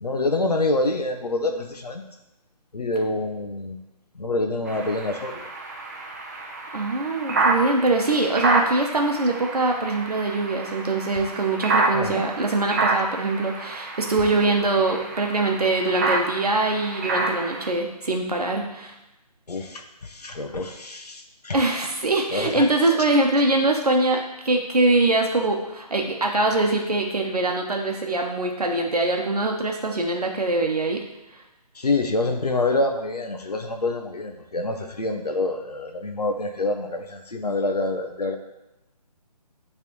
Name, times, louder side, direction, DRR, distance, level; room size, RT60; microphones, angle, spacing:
voice 1, 0.0-2.0 2.7-3.8 4.2-5.3 11.9-12.2 19.5-21.6 22.3-23.0 31.8-38.4, left 2 dB, 75° left, 4 dB, 0.8 m, -26 dB
sound 1, 4.7-17.7, right 2 dB, 25° right, 0.5 m, -28 dB
voice 2, 6.7-18.9 21.5-31.0 31.3-31.4, right 2 dB, 70° right, 2 dB, 0.9 m, -23 dB
9.2 x 3.3 x 3.1 m, 0.95 s
figure-of-eight pair, 145°, 20 cm